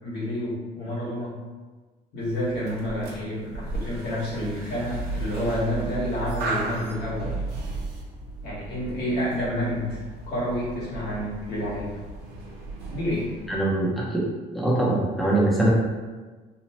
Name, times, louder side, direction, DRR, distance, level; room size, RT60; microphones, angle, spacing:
voice 1, 0.0-1.3 2.1-7.3 8.4-11.9 12.9-13.3, equal, 80° left, -8 dB, 1.3 m, -29 dB
sound 1, 2.2-13.6, right 2 dB, 75° right, 0.7 m, -35 dB
voice 2, 13.5-14.2 14.5-15.7, right 1 dB, ahead, -6 dB, 0.6 m, -22 dB
2.9 x 2.1 x 2.9 m, 1.3 s
cardioid pair, 110°, 17 cm